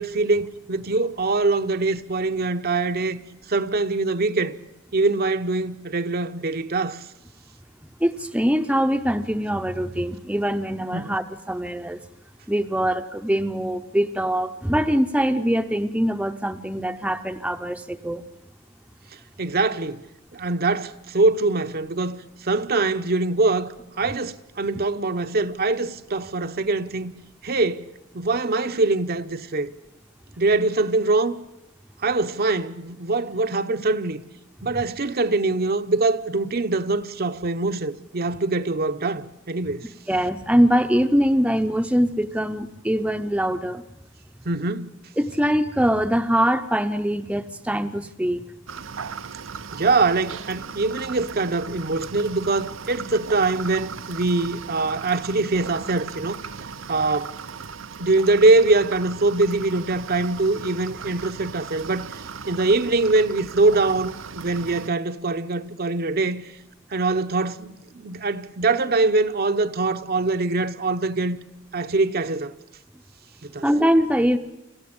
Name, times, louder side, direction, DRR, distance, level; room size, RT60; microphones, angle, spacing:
voice 1, 0.0-3.2 3.5-4.5 4.9-7.0 10.9-11.2 19.4-20.0 20.3-27.1 27.4-27.9 28.1-29.7 30.4-31.4 32.0-34.2 34.6-39.9 44.5-44.9 49.7-56.4 56.9-57.4 58.0-66.4 66.9-71.4 71.7-72.5 73.4-73.6, right 3 dB, 50° right, 0.9 m, -23 dB
voice 2, 8.0-12.0 12.5-18.2 24.7-24.8 40.1-43.8 45.2-48.4 56.9-57.1 73.6-74.4, equal, 5° right, 0.7 m, -23 dB
sound 1, 48.7-64.9, right 6 dB, 85° right, 0.8 m, -37 dB
27.0 x 15.0 x 8.8 m
head